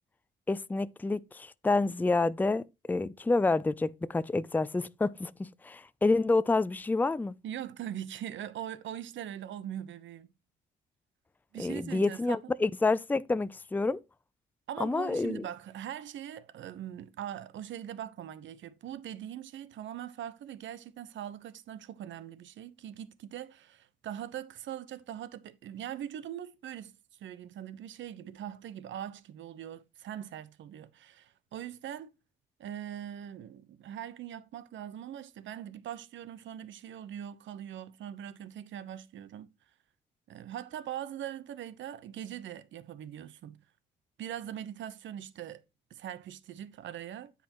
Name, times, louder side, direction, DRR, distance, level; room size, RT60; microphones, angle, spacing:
voice 1, 0.5-7.3 11.6-14.0 14.8-15.4, left 3 dB, 10° left, 0.5 m, -28 dB
voice 2, 7.4-10.3 11.5-12.4 14.7-26.9 27.2-32.1 32.6-39.5 40.3-43.6 44.2-45.6 45.9-47.3, right 10 dB, 70° right, 1.0 m, -41 dB
9.5 x 8.4 x 3.0 m
cardioid pair, 90°, 20 cm